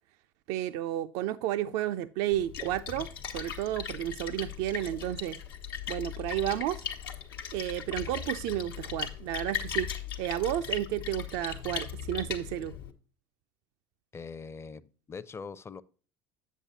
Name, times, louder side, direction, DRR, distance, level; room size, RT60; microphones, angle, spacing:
voice 1, 0.5-3.1 3.3-5.4 5.9-6.8 7.5-9.9 10.2-12.7, right 13 dB, 60° right, 0.4 m, -32 dB
Splash splatter, 2.3-12.9, left 8 dB, 85° left, 1.0 m, -38 dB
voice 2, 14.1-15.8, left 5 dB, 20° left, 0.5 m, -42 dB
8.0 x 7.3 x 2.7 m
hypercardioid pair, 70°, 12 cm